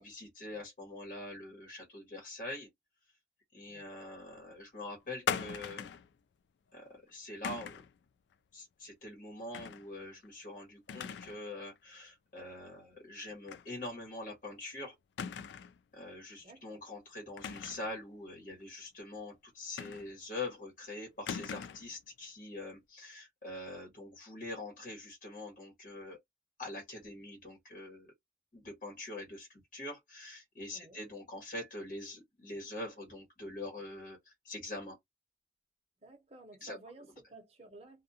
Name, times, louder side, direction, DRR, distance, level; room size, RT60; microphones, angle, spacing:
voice 1, 0.0-2.7 3.5-5.9 6.7-7.8 8.5-14.9 15.9-26.2 26.6-28.1 28.5-35.0 36.6-36.8, left 2 dB, 45° left, 1.3 m, -44 dB
sound 1, 5.3-6.1 7.4-7.9 9.5-9.9 10.2-10.3 10.9-11.4 11.8-11.9 13.5-13.7 14.0-14.1 15.2-15.8 17.4-17.9 19.8-20.3 21.3-21.9, left 7 dB, 75° left, 0.3 m, -39 dB
voice 2, 16.4-16.8 30.7-31.0 36.0-38.0, right 2 dB, 35° right, 0.9 m, -54 dB
2.5 x 2.4 x 2.7 m
head